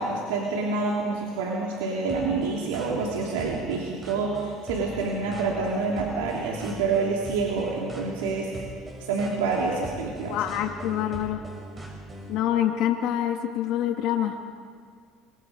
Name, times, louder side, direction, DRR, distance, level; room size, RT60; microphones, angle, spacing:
voice 1, 0.0-8.5 9.0-10.5, right 4 dB, 90° right, -2 dB, 3.1 m, -27 dB
sound 1, 2.1-12.4, right 2 dB, 25° right, 7.2 m, -40 dB
voice 2, 10.3-11.4 12.3-14.4, left 11 dB, 65° left, 4 dB, 2.1 m, -26 dB
27.5 x 24.0 x 5.3 m, 2.1 s
supercardioid pair, 90°, 0 cm